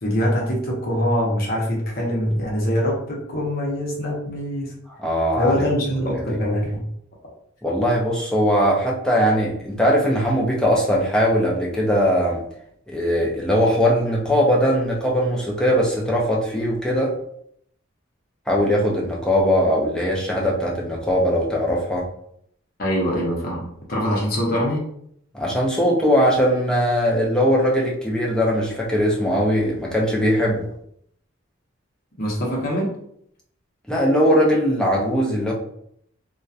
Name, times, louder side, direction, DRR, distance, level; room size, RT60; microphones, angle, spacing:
voice 1, 0.0-4.7 5.4-6.9 22.8-24.8 32.2-32.9, equal, 45° left, -3 dB, 0.8 m, -23 dB
voice 2, 5.0-5.5 6.1-6.4 7.6-12.4 12.9-17.1 18.5-22.1 25.3-30.7 33.9-35.5, equal, 5° left, -4 dB, 0.5 m, -20 dB
2.7 x 2.2 x 2.4 m, 0.70 s
head